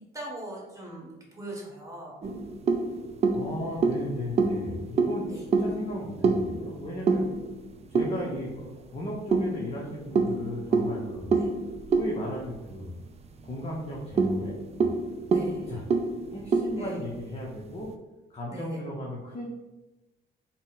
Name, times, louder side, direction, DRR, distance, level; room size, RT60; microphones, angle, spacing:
voice 1, 0.1-2.1 5.3-5.4 15.3-15.6 16.7-17.0 18.5-18.8, right 1 dB, 15° right, -2 dB, 1.3 m, -40 dB
sound 1, 2.2-8.6 9.3-13.2 13.5-13.6 14.0-17.5, right 4 dB, 35° right, 0.3 m, -27 dB
voice 2, 3.3-7.3 7.9-11.4 11.9-12.9 13.4-14.9 15.7-15.8 16.3-17.9 18.3-19.5, equal, 30° left, -3 dB, 0.7 m, -36 dB
3.8 x 2.1 x 3.9 m, 1.1 s
cardioid pair, 90°, 20 cm